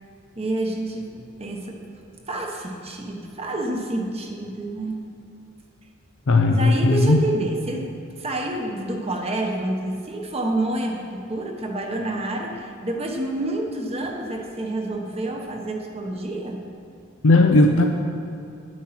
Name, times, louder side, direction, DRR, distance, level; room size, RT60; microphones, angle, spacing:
voice 1, 0.3-1.8 2.3-5.0 6.5-7.9 8.2-16.6, right 1 dB, 30° right, 1 dB, 1.3 m, -28 dB
voice 2, 6.3-7.2 17.2-17.9, left 2 dB, 70° left, 3 dB, 0.6 m, -16 dB
10.0 x 9.4 x 5.9 m, 2.7 s
head